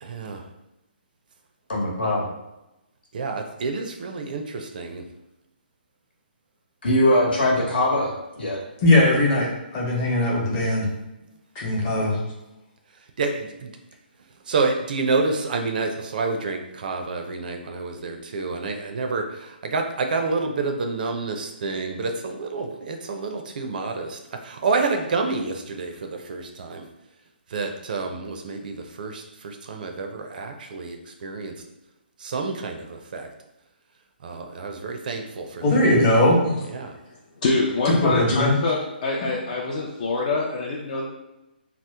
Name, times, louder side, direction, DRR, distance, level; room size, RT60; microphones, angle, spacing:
voice 1, 0.0-0.5 3.1-5.1 12.0-12.1 13.2-13.7 14.5-26.9 27.5-31.6 32.2-33.3 34.2-35.7 36.7-36.9, right 3 dB, 55° right, 4 dB, 0.4 m, -28 dB
voice 2, 1.7-2.2 6.8-8.1 8.4-8.6, left 1 dB, 70° left, -2 dB, 1.1 m, -21 dB
voice 3, 8.8-10.9 11.5-12.2 35.6-36.4 38.0-38.5, left 1 dB, 25° left, -4 dB, 0.8 m, -19 dB
voice 4, 37.4-41.0, left 3 dB, 45° left, -3 dB, 0.5 m, -25 dB
2.9 x 2.0 x 3.4 m, 0.95 s
hypercardioid pair, 150°, 6 cm